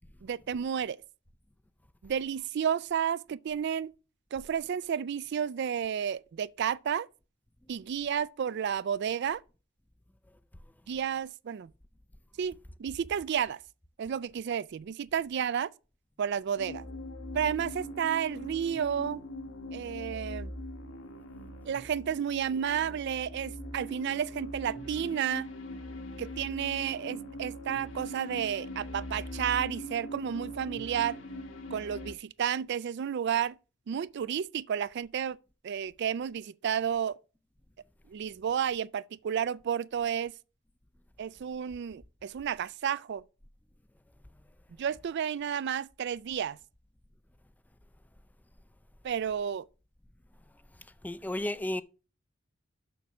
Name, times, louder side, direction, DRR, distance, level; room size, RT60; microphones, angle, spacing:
voice 1, 0.2-1.0 2.0-3.9 4.3-7.1 7.7-9.4 10.9-11.7 12.4-12.5 12.8-13.6 14.0-15.7 16.2-16.9 17.3-19.2 19.7-20.5 21.6-25.5 26.2-31.2 31.7-33.6 33.9-35.4 35.6-37.2 38.1-40.3 41.2-43.2 44.8-46.6 49.0-49.7, right 8 dB, 60° right, 0.4 m, -31 dB
sound 1, 16.6-32.1, equal, 75° left, 1.5 m, -41 dB
voice 2, 50.7-51.8, left 1 dB, 10° left, 0.4 m, -34 dB
7.1 x 5.9 x 6.1 m
head